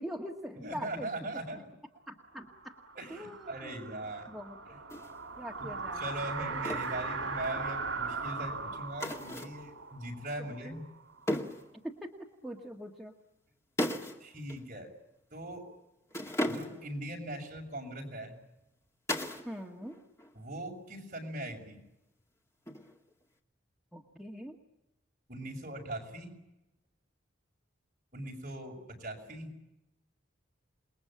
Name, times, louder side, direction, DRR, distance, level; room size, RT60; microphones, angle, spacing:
voice 1, 0.0-1.6 2.1-2.8 3.1-4.0 4.3-4.6 5.4-6.1 10.6-10.8 11.8-12.2 12.4-13.1 19.4-20.0 23.9-24.6, equal, ahead, -1 dB, 1.9 m, -43 dB
voice 2, 0.6-1.6 3.0-4.3 6.0-10.8 14.2-14.9 15.3-15.7 16.4-18.3 20.3-21.8 25.3-26.3 28.1-29.5, right 1 dB, 40° right, 1 dB, 6.6 m, -40 dB
sound 1, 2.4-11.2, right 4 dB, 75° right, 3.7 m, -39 dB
sound 2, 4.9-5.1 6.6-7.0 9.0-9.6 11.3-11.7 13.8-14.2 14.5-14.6 16.1-16.9 19.1-19.5 19.8-20.3 22.7-23.1, left 1 dB, 15° left, 2.0 m, -35 dB
28.5 x 21.5 x 8.8 m, 0.92 s
head